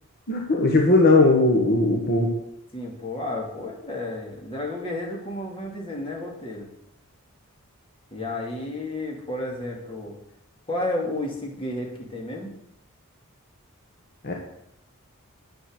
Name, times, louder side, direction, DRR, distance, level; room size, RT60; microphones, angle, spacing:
voice 1, 0.3-2.3 14.2-14.3, left 2 dB, 45° left, 0 dB, 1.6 m, -18 dB
voice 2, 2.7-6.7 8.1-10.2 10.7-12.5, left 1 dB, 25° left, -1 dB, 2.8 m, -32 dB
10.5 x 8.8 x 6.7 m, 0.81 s
head